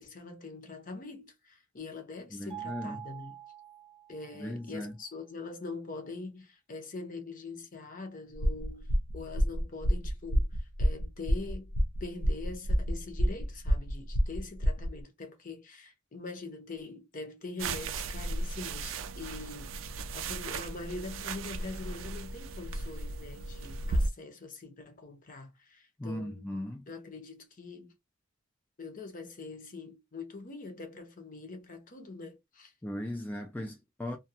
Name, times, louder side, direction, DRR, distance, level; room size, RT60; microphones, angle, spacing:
voice 1, 0.0-3.3 4.1-11.7 12.0-26.4 26.9-27.9 28.8-32.7, left 3 dB, 45° left, 0.7 m, -43 dB
voice 2, 2.3-3.1 4.3-5.0 26.0-26.8 32.8-34.2, left 1 dB, 10° left, 0.4 m, -38 dB
Mallet percussion, 2.5-4.5, right 11 dB, 35° right, 0.7 m, -45 dB
sound 1, 8.4-15.0, equal, 80° left, 0.6 m, -28 dB
sound 2, 17.6-24.1, right 2 dB, 70° right, 0.4 m, -35 dB
2.3 x 2.2 x 2.7 m
head